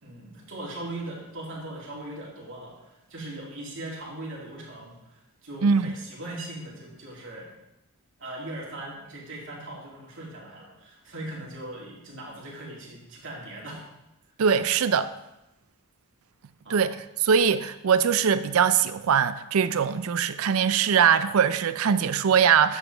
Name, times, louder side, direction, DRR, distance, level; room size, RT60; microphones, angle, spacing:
voice 1, 0.0-7.6 8.2-13.8 16.6-16.8, right 1 dB, 55° right, 2.6 m, -39 dB
voice 2, 5.6-5.9 14.4-15.1 16.7-17.0 17.2-22.8, right 7 dB, 75° right, 0.4 m, -22 dB
9.7 x 7.3 x 3.4 m
head